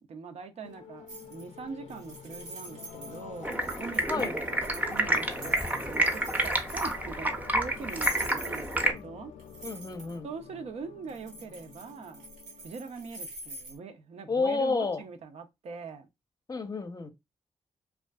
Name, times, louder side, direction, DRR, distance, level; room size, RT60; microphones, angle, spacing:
voice 1, 0.0-9.3 10.2-12.3 12.6-16.1, right 5 dB, 70° right, 0.5 m, -42 dB
sound 1, 0.6-13.5, left 7 dB, 85° left, 0.4 m, -48 dB
sound 2, 1.1-1.6 1.9-7.1 7.8-9.0 9.4-10.2 11.1-13.8, right 1 dB, 85° right, 0.9 m, -44 dB
Stream, 3.4-8.9, right 1 dB, 15° right, 0.6 m, -29 dB
voice 2, 9.6-10.3 14.3-15.0 16.5-17.1, left 4 dB, 35° left, 0.6 m, -30 dB
2.4 x 2.3 x 2.2 m
cardioid pair, 60°, 12 cm